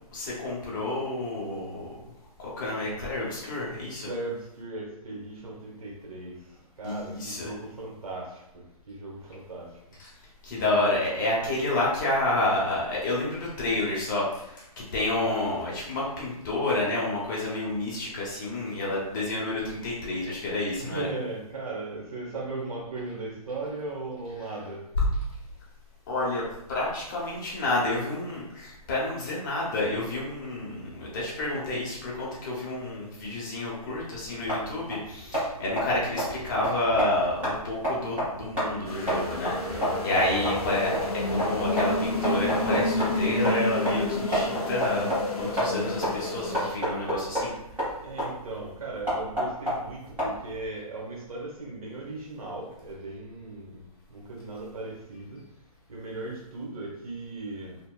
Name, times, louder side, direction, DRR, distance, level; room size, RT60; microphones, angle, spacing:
voice 1, 0.1-2.0 2.4-4.1 6.8-7.5 10.4-21.1 25.0-25.1 26.1-39.7 40.0-47.5, left 2 dB, 30° left, -5 dB, 0.7 m, -29 dB
voice 2, 4.0-6.4 6.8-9.7 10.7-10.8 20.8-24.9 39.6-40.1 48.0-55.4 55.9-57.8, right 2 dB, 70° right, -2 dB, 0.9 m, -37 dB
sound 1, 33.9-50.7, equal, 10° right, 1.0 m, -31 dB
sound 2, 38.9-46.7, left 2 dB, 75° left, 0.7 m, -29 dB
2.8 x 2.1 x 2.2 m, 0.82 s
hypercardioid pair, 155°, 19 cm